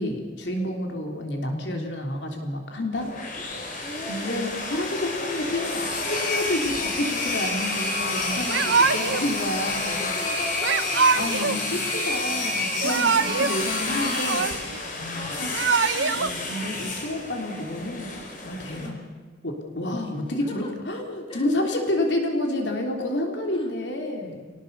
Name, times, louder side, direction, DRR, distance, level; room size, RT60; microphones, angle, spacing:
voice 1, 0.0-3.6 4.1-10.1 11.1-14.5 15.0-15.6 16.2-18.1 18.4-18.9 19.4-24.5, left 1 dB, 70° left, 2 dB, 3.5 m, -29 dB
sound 1, 2.9-18.9, left 2 dB, 50° left, 4.8 m, -29 dB
voice 2, 3.8-4.4 8.5-11.7 13.1-13.5 15.1-16.2 18.8-19.0 20.1-20.7 21.3-21.8 23.5-23.7, left 1 dB, 30° left, 1 dB, 3.8 m, -40 dB
Yell / Crying sobbing, 8.5-9.3 10.6-11.6 12.6-13.6 13.9-14.8 15.4-16.3, right 5 dB, 80° right, 1.0 m, -23 dB
26.5 x 18.5 x 6.9 m, 1.5 s
head